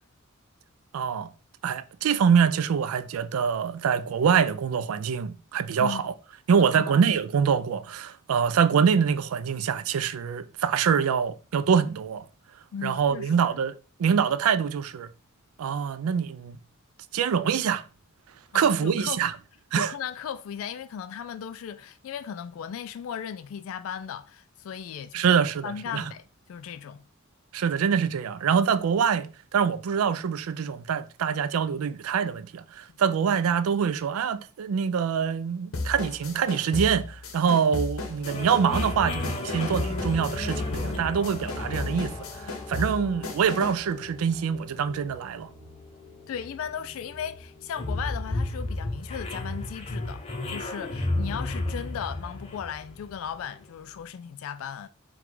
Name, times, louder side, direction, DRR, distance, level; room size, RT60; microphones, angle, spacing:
voice 1, 0.9-1.3 1.6-6.1 6.5-12.2 12.8-15.1 15.6-16.6 17.1-17.8 18.5-19.3 19.7-19.9 25.1-26.0 27.5-45.5, right 7 dB, 85° right, 0.4 m, -25 dB
voice 2, 6.6-7.1 12.7-13.6 18.5-19.2 19.7-25.4 25.6-26.2 26.5-27.0 46.3-50.2 50.5-54.9, left 8 dB, 70° left, 0.3 m, -36 dB
sound 1, 35.7-43.9, left 3 dB, 85° left, 0.8 m, -34 dB
sound 2, 38.2-53.7, left 2 dB, 30° left, 0.6 m, -34 dB
sound 3, 42.8-50.6, left 1 dB, 20° right, 0.4 m, -52 dB
4.6 x 2.3 x 3.8 m
head